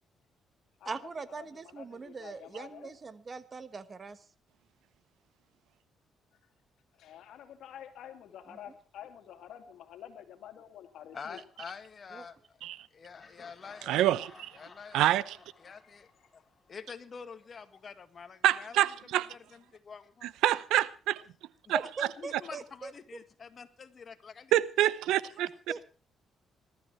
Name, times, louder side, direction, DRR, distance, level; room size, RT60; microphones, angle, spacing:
voice 1, 0.8-4.2 8.5-8.8 12.1-12.3 21.7-22.9 25.7-25.8, right 4 dB, 35° right, 1.3 m, -41 dB
voice 2, 1.7-2.9 7.0-9.6 9.9-10.1 10.4-11.4, left 10 dB, 75° left, 2.5 m, -48 dB
voice 3, 11.1-12.4 12.9-14.0 14.5-15.1 15.6-16.4 16.7-18.8 19.1-20.3 21.7-21.8 22.2-24.5 24.8-24.9, left 5 dB, 45° left, 1.9 m, -47 dB
Laughter, 13.1-17.0, left 3 dB, 25° left, 4.9 m, -57 dB
voice 4, 13.9-14.5 14.9-15.4 18.4-19.3 20.2-21.2 21.7-21.8 24.5-25.5, right 13 dB, 90° right, 0.8 m, -26 dB
20.5 x 13.0 x 4.5 m
cardioid pair, 90°, 0 cm